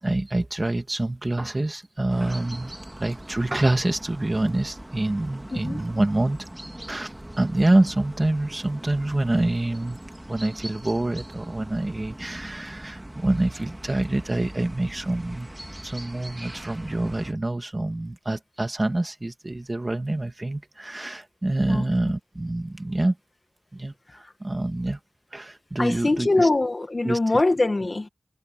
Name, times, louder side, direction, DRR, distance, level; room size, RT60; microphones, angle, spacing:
voice 1, 0.0-2.7 3.0-6.5 6.9-10.0 10.3-15.5 15.8-23.2 23.7-25.0 25.3-26.5 27.0-27.2, right 2 dB, 35° right, 2.4 m, -26 dB
sound 1, 2.1-17.3, right 1 dB, 20° right, 2.4 m, -41 dB
voice 2, 5.5-5.8 21.6-21.8 24.1-24.3 25.8-28.1, left 2 dB, 50° left, 1.9 m, -23 dB
wide cardioid pair, 45°, 0 cm